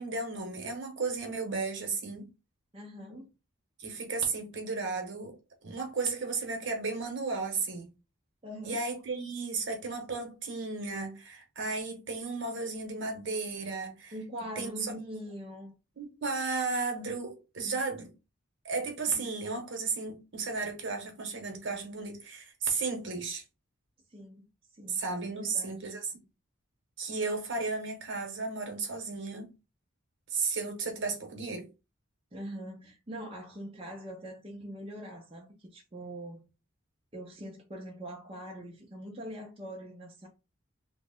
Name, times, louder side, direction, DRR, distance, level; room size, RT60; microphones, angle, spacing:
voice 1, 0.0-2.2 3.8-5.4 5.6-7.9 8.6-14.1 14.6-14.9 16.0-18.1 18.6-23.4 24.9-26.2 27.0-29.5 30.3-31.7, right 4 dB, 55° right, 0.9 m, -34 dB
voice 2, 2.7-3.3 8.4-8.8 14.1-15.7 19.1-19.3 24.1-24.5 24.7-25.0 25.3-25.9 32.3-36.4 37.1-40.3, equal, 25° right, 0.5 m, -43 dB
3.0 x 2.1 x 3.5 m
head